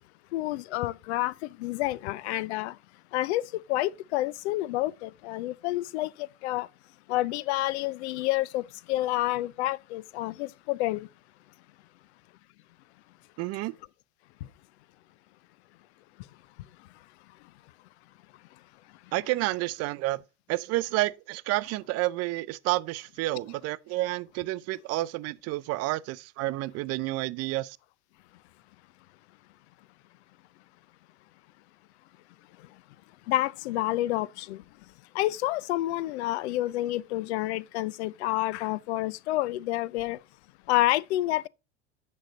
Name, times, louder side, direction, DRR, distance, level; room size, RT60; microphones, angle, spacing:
voice 1, 0.3-2.8 3.1-6.7 7.1-11.1 33.3-34.6 35.1-40.2 40.7-41.5, left 16 dB, 70° left, 0.5 m, -29 dB
voice 2, 13.4-13.7 19.1-20.2 20.5-27.8, right 18 dB, 45° right, 0.5 m, -30 dB
8.9 x 6.5 x 3.9 m
hypercardioid pair, 85°, 34 cm